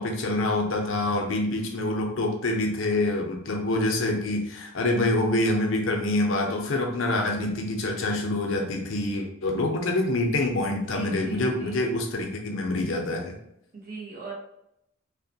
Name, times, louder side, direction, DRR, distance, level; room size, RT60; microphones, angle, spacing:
voice 1, 0.0-13.4, left 2 dB, 80° left, 2 dB, 0.6 m, -26 dB
voice 2, 10.7-11.8 13.7-14.3, right 3 dB, 50° right, -3 dB, 0.9 m, -39 dB
2.8 x 2.1 x 2.7 m, 0.79 s
head